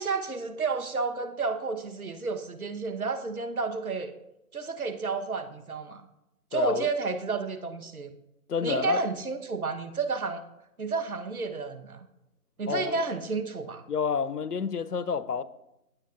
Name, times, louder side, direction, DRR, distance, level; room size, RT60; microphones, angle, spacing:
voice 1, 0.0-4.1 4.5-6.1 6.5-8.1 8.6-10.4 10.8-12.1 12.6-13.8, right 4 dB, 65° right, 1.2 m, -31 dB
voice 2, 6.5-6.9 8.5-9.1 12.7-13.0 13.9-15.4, left 6 dB, 80° left, 0.7 m, -29 dB
16.5 x 7.6 x 2.5 m
figure-of-eight pair, 170°, 46 cm